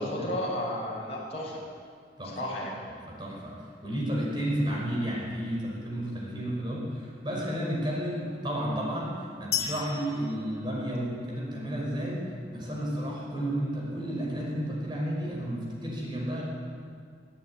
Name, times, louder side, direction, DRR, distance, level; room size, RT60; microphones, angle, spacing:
voice 1, 0.0-1.6 2.2-2.7, left 1 dB, 35° left, -4 dB, 6.9 m, -33 dB
voice 2, 3.1-16.4, equal, 25° right, -2 dB, 5.5 m, -32 dB
sound 1, 9.5-11.5, left 9 dB, 70° left, 2.6 m, -35 dB
22.5 x 14.5 x 9.8 m, 2.1 s
head